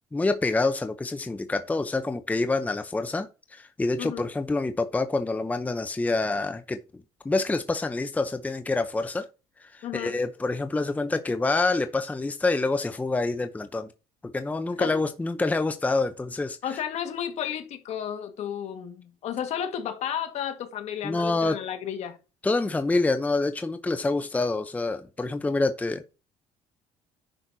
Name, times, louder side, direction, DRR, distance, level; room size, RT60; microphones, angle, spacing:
voice 1, 0.1-9.3 9.6-13.9 14.2-16.6 21.0-21.6 22.4-26.1, left 3 dB, 10° left, 0.7 m, -27 dB
voice 2, 9.8-10.2 14.8-14.9 16.6-22.2, left 9 dB, 60° left, 1.7 m, -32 dB
10.0 x 6.2 x 2.8 m
cardioid pair, 100°, 12 cm